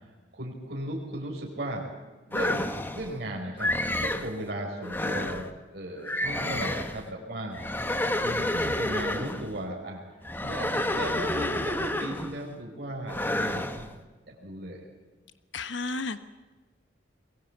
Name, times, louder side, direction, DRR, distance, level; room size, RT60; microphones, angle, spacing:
voice 1, 0.3-1.9 2.3-3.7 4.0-7.6 8.2-10.0 10.4-13.8 14.2-14.8, right 1 dB, 60° right, -1 dB, 4.8 m, -36 dB
sound 1, 2.3-3.1 3.6-4.3 4.8-5.5 6.0-7.0 7.5-9.5 10.2-12.4 13.1-13.9, left 1 dB, 10° left, 1.1 m, -29 dB
voice 2, 15.5-16.2, left 3 dB, 80° left, 11 dB, 1.2 m, -32 dB
23.0 x 21.0 x 8.0 m, 1.2 s
head